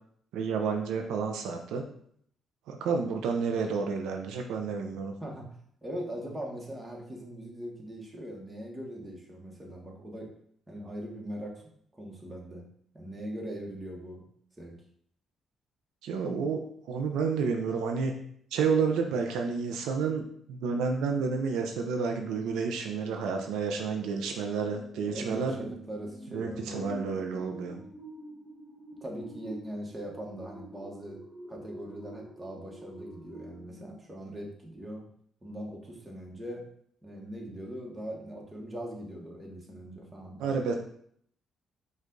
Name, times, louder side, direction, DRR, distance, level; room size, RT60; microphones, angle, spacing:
voice 1, 0.3-1.8 2.7-5.1 16.0-16.6 16.9-18.1 18.5-20.2 20.5-25.5 26.3-27.8 40.4-40.7, right 5 dB, 90° right, 3 dB, 0.5 m, -30 dB
voice 2, 5.2-5.6 5.8-10.3 10.7-11.5 11.9-12.6 12.9-14.2 14.6-14.7 25.1-26.9 29.0-31.2 31.5-35.0 35.4-36.6 37.0-40.5, equal, 20° right, 0 dB, 1.2 m, -41 dB
sound 1, 23.2-33.9, right 1 dB, ahead, 1.0 m, -47 dB
5.2 x 2.4 x 3.8 m, 0.64 s
cardioid pair, 90°, 0 cm